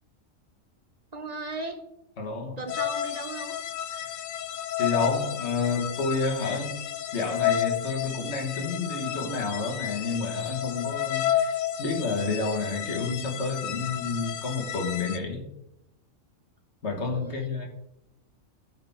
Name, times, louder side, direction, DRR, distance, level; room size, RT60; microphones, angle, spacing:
voice 1, 1.1-1.9 2.6-3.6 17.1-17.5, right 2 dB, 35° right, 6 dB, 0.7 m, -37 dB
voice 2, 2.2-2.6 3.9-4.3 4.8-6.8 7.1-15.5 16.8-17.7, left 4 dB, 60° left, 1 dB, 1.8 m, -30 dB
sound 1, 2.7-15.2, left 10 dB, 85° left, 1.0 m, -31 dB
13.0 x 4.3 x 3.6 m, 0.82 s
omnidirectional pair, 1.3 m